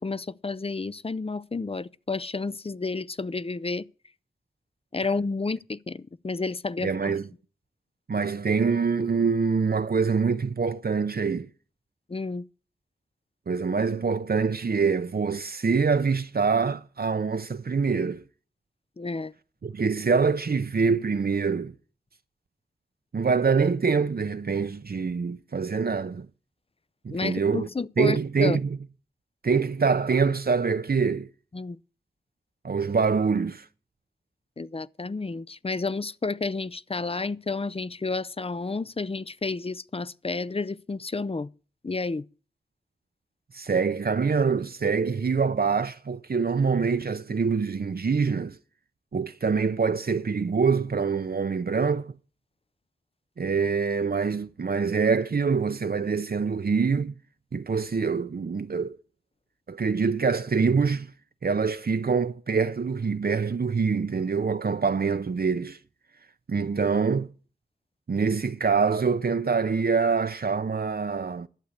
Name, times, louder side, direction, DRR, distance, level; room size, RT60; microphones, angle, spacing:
voice 1, 0.0-3.8 4.9-7.2 12.1-12.5 19.0-19.3 27.1-28.6 31.5-31.8 34.6-41.5 41.8-42.2, left 3 dB, 35° left, 0.5 m, -31 dB
voice 2, 6.8-7.3 8.1-11.5 13.5-18.2 19.6-21.7 23.1-26.3 27.0-27.7 28.0-28.8 29.4-31.3 32.6-33.7 43.5-48.6 49.1-52.1 53.4-57.1 57.5-59.0 59.7-61.1 61.4-65.8 66.5-67.3 68.1-71.5, right 5 dB, 65° right, 0.6 m, -25 dB
11.5 x 8.2 x 6.5 m
wide cardioid pair, 45°, 17 cm